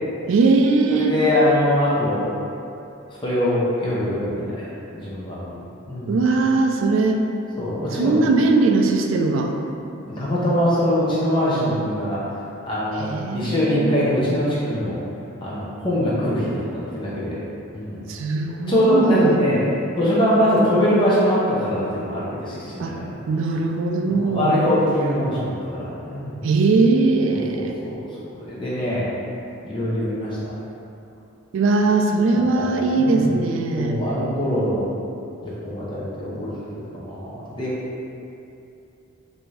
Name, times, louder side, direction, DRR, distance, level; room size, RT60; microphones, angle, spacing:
voice 1, 0.3-1.2 6.1-7.2 7.9-9.5 13.0-13.9 18.1-19.4 22.8-23.0 23.3-24.6 26.4-27.7 31.5-34.0, right 3 dB, 65° right, 3 dB, 0.3 m, -20 dB
voice 2, 0.9-2.3 3.2-4.7 4.9-5.6 5.9-6.2 7.6-8.2 10.1-12.2 12.7-15.0 15.4-17.4 17.7-18.0 18.7-19.6 20.0-23.1 24.1-26.4 27.5-28.0 28.3-29.1 29.6-30.4 32.6-33.3 33.8-34.9 35.4-36.5 36.9-37.7, equal, 25° left, -8 dB, 0.6 m, -22 dB
3.4 x 2.6 x 3.1 m, 2.8 s
head